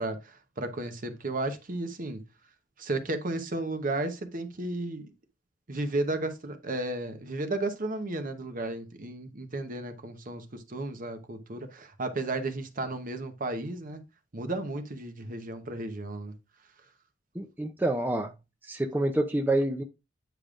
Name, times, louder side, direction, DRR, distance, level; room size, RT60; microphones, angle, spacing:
voice 1, 0.0-2.2 2.8-5.1 5.7-14.0 14.3-16.3, right 2 dB, 45° right, 0.9 m, -33 dB
voice 2, 17.3-18.3 18.6-19.8, right 1 dB, 10° right, 0.5 m, -27 dB
9.2 x 5.1 x 2.5 m
head